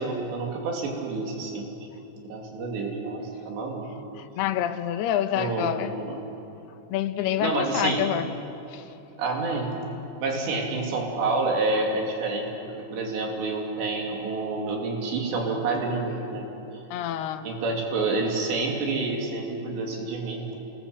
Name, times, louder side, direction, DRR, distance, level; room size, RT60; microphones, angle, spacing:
voice 1, 0.0-1.7 2.1-3.9 5.4-6.2 7.4-8.0 9.2-9.8 10.2-16.4 17.4-20.6, right 3 dB, 75° right, 0 dB, 4.8 m, -28 dB
voice 2, 4.1-6.0 6.9-8.3 8.7-8.9 16.9-17.6, left 10 dB, 75° left, 9 dB, 2.7 m, -27 dB
27.5 x 20.5 x 7.8 m, 3.0 s
omnidirectional pair, 5.1 m